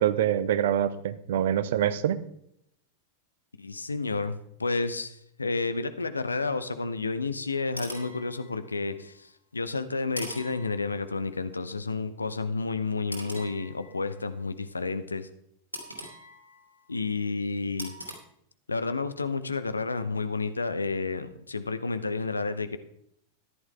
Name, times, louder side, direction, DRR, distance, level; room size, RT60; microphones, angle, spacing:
voice 1, 0.0-2.2, right 10 dB, 55° right, 14 dB, 0.8 m, -25 dB
voice 2, 3.6-15.3 16.9-17.9 18.7-22.8, left 3 dB, 80° left, 12 dB, 0.9 m, -31 dB
sound 1, 7.5-9.0 10.2-11.4 13.1-14.4 15.7-17.0 17.8-18.2, equal, 90° right, 2.7 m, -42 dB
14.0 x 11.0 x 3.8 m, 0.73 s
figure-of-eight pair, 90°, 0 cm